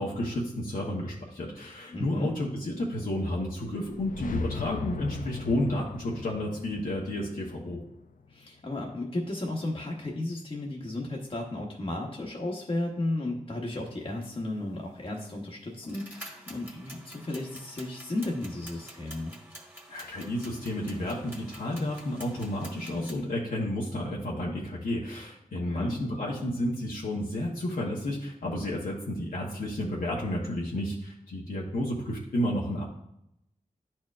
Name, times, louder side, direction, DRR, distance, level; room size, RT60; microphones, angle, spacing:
voice 1, 0.0-7.8 19.9-32.9, left 1 dB, 85° left, -4 dB, 1.0 m, -31 dB
voice 2, 1.9-2.3 8.3-19.3 25.7-26.0, left 2 dB, 40° left, -1 dB, 1.0 m, -34 dB
sound 1, 3.7-8.6, left 4 dB, 70° left, 0.4 m, -38 dB
sound 2, 14.9-15.0 15.8-23.1, right 1 dB, 15° right, 1.5 m, -48 dB
10.5 x 4.4 x 2.4 m, 0.78 s
wide cardioid pair, 65°, 14 cm